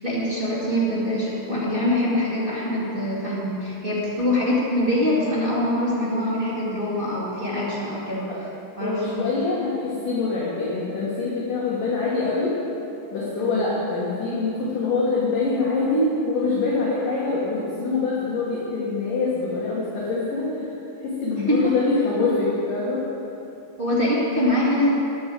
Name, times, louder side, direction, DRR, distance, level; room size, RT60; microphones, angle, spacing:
voice 1, 0.0-8.3 8.7-9.4 13.4-13.6 21.3-21.7 23.8-24.9, left 1 dB, 60° right, -9 dB, 0.5 m, -24 dB
voice 2, 8.8-12.6 13.1-20.5 21.0-23.1, left 3 dB, 55° left, -6 dB, 2.6 m, -24 dB
10.5 x 9.6 x 7.7 m, 2.9 s
omnidirectional pair, 5.7 m